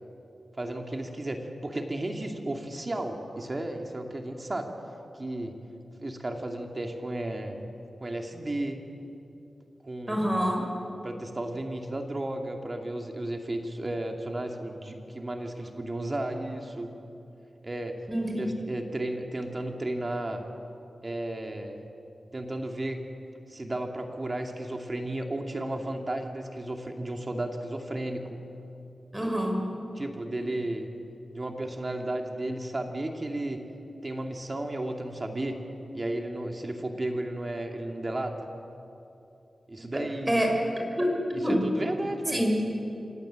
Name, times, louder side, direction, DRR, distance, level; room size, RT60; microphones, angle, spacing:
voice 1, 0.6-4.7 5.2-5.5 6.0-7.7 8.0-8.9 9.8-10.4 11.0-16.9 17.6-18.0 18.4-20.4 21.0-21.9 22.3-23.1 23.5-28.4 30.0-30.9 31.3-33.6 34.0-35.6 35.9-38.5 39.7-40.4 41.3-42.6, right 1 dB, 40° right, 3 dB, 2.7 m, -33 dB
voice 2, 10.1-10.6 18.1-18.7 29.1-29.6 39.9-40.5 41.0-41.6 42.3-42.5, equal, 20° right, 1 dB, 5.6 m, -27 dB
26.5 x 17.5 x 7.9 m, 2.9 s
cardioid pair, 50°, 0 cm